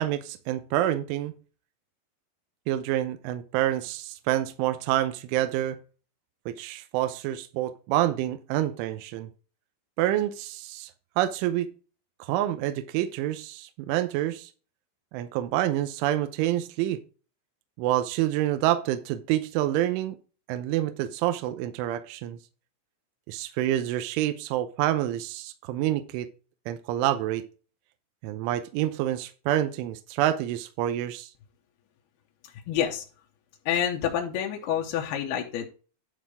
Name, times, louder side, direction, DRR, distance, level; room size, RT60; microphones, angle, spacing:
voice 1, 0.0-1.3 2.7-5.8 6.5-9.3 10.0-10.9 11.2-11.7 12.2-14.5 15.1-17.0 17.8-20.2 20.5-22.4 23.3-26.3 26.7-27.4 28.2-31.3, right 13 dB, 80° right, 10 dB, 3.0 m, -27 dB
voice 2, 32.7-33.0 33.7-35.7, left 9 dB, 75° left, 1 dB, 2.3 m, -28 dB
11.5 x 4.1 x 4.9 m, 0.35 s
omnidirectional pair, 6.0 m